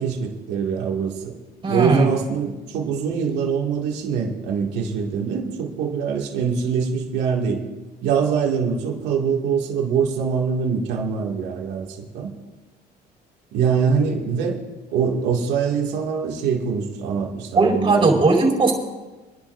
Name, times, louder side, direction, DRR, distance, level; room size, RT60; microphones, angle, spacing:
voice 1, 0.0-1.3 1.7-7.6 8.0-12.3 13.5-14.6 14.9-18.2, right 6 dB, 90° right, 0 dB, 2.3 m, -23 dB
voice 2, 1.6-2.1 17.5-18.7, right 3 dB, 30° right, 1 dB, 4.8 m, -18 dB
28.0 x 11.0 x 2.7 m, 1.1 s
cardioid pair, 110°, 17 cm